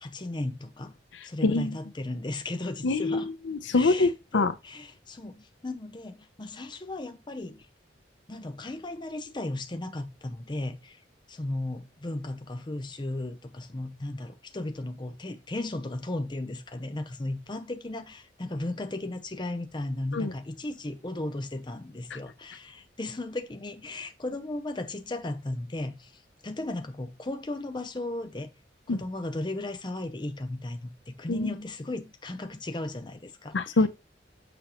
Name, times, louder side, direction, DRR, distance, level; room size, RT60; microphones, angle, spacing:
voice 1, 0.0-0.9 1.2-3.3 3.7-7.7 8.3-11.0 11.3-28.5 28.9-33.8, left 2 dB, 25° left, 0.6 m, -35 dB
voice 2, 1.4-1.8 2.8-4.5 20.1-20.3 22.1-22.2 28.9-29.0 31.3-31.5 33.5-33.9, left 3 dB, 75° left, 0.6 m, -25 dB
6.8 x 5.2 x 2.9 m
head